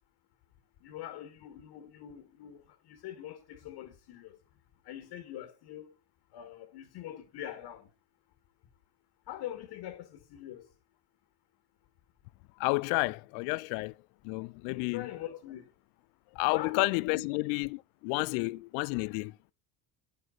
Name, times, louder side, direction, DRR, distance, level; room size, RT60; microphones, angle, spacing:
voice 1, 0.8-4.4 4.8-5.9 6.3-7.9 9.3-10.7 14.7-15.7 16.5-16.8 17.1-17.4, left 12 dB, 70° left, 1.8 m, -43 dB
voice 2, 12.6-13.9 14.2-15.1 16.3-19.3, left 26 dB, 85° left, 0.5 m, -31 dB
12.5 x 9.7 x 3.9 m
supercardioid pair, 95°, 43 cm